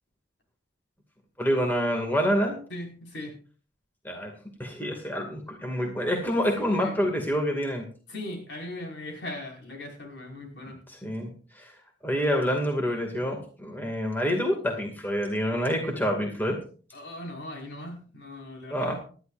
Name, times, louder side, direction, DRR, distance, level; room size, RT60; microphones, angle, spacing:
voice 1, 1.4-2.6 4.0-4.3 4.6-7.8 11.0-11.3 11.6-11.7 12.0-16.6 18.7-18.9, equal, 10° left, 2 dB, 2.2 m, -27 dB
voice 2, 2.7-3.4 6.6-7.0 8.1-10.8 16.9-18.9, left 1 dB, 70° left, 1 dB, 5.2 m, -39 dB
19.0 x 13.0 x 2.6 m, 0.40 s
head